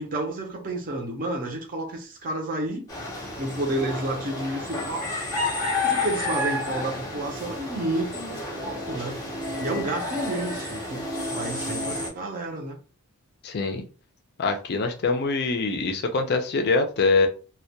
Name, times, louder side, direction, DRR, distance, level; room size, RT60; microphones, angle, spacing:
voice 1, 0.0-2.9 3.4-5.1 5.8-9.2 9.6-11.0 11.3-12.8, right 1 dB, 40° right, 0.5 m, -30 dB
sound 1, 2.9-12.1, left 2 dB, 15° left, 0.7 m, -30 dB
voice 2, 13.4-13.8 14.4-17.3, left 3 dB, 45° left, 0.4 m, -24 dB
2.2 x 2.1 x 2.7 m
head